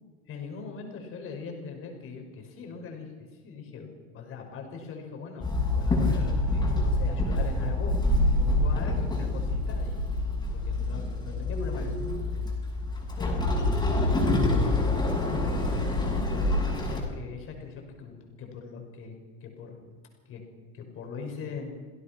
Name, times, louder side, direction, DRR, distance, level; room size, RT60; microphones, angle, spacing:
voice 1, 0.3-8.0 8.4-12.4 13.2-13.4 13.7-16.6 16.9-19.8 20.3-20.4 20.7-21.7, left 5 dB, 35° left, 3 dB, 5.8 m, -41 dB
Walk footsteps / Chatter / Hiss, 5.4-17.0, left 2 dB, 10° left, 6.2 m, -26 dB
27.5 x 16.5 x 6.0 m, 1.5 s
supercardioid pair, 155°, 38 cm